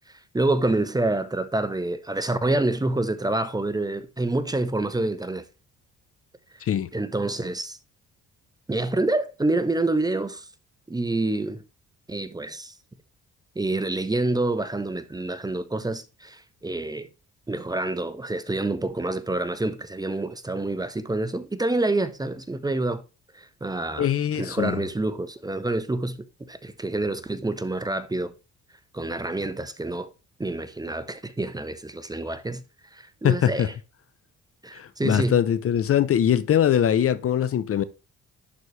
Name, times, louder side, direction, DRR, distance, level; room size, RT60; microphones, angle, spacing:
voice 1, 0.1-5.5 6.9-7.8 8.7-10.5 10.9-11.6 12.1-12.7 13.6-17.1 17.5-23.0 23.3-24.1 24.4-28.3 28.9-30.1 30.4-32.6 32.9-33.7 34.6-35.4, right 2 dB, 15° right, 0.7 m, -27 dB
voice 2, 24.0-24.8 33.2-33.7 34.7-37.8, left 10 dB, 50° left, 0.6 m, -22 dB
11.0 x 4.0 x 3.2 m
cardioid pair, 90°, 30 cm